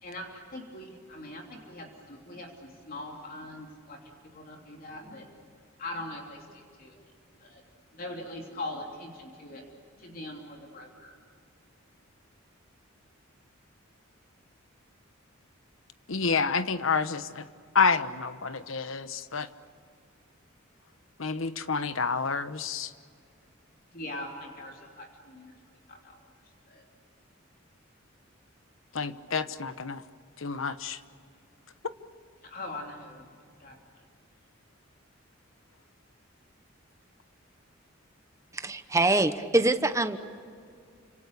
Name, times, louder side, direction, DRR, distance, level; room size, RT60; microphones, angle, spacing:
voice 1, 0.0-5.3 5.8-7.0 7.4-7.6 7.9-9.7 10.0-11.2 23.9-26.3 26.7-26.8 32.4-33.3 33.6-33.8, left 1 dB, 45° left, 1 dB, 3.2 m, -42 dB
voice 2, 16.1-17.4 17.7-19.5 21.2-22.9 28.9-30.0 30.4-31.0, left 5 dB, 75° left, 12 dB, 1.1 m, -28 dB
voice 3, 38.5-40.2, right 2 dB, 15° right, 9 dB, 1.1 m, -24 dB
30.0 x 27.0 x 6.8 m, 2.2 s
head